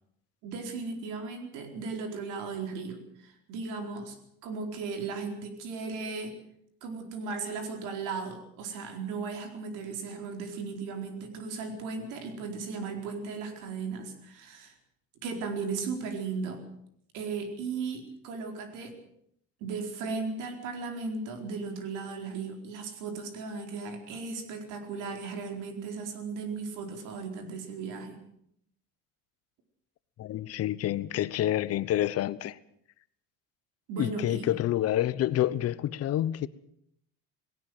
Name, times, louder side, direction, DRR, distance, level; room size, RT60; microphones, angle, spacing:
voice 1, 0.4-4.2 4.4-6.3 6.8-14.7 15.2-16.6 17.1-18.9 19.6-28.2 33.9-34.5, right 4 dB, 80° right, 4.5 m, -36 dB
voice 2, 30.2-32.6 34.0-36.5, left 13 dB, 50° left, 1.0 m, -28 dB
19.0 x 17.5 x 7.9 m
cardioid pair, 110°, 30 cm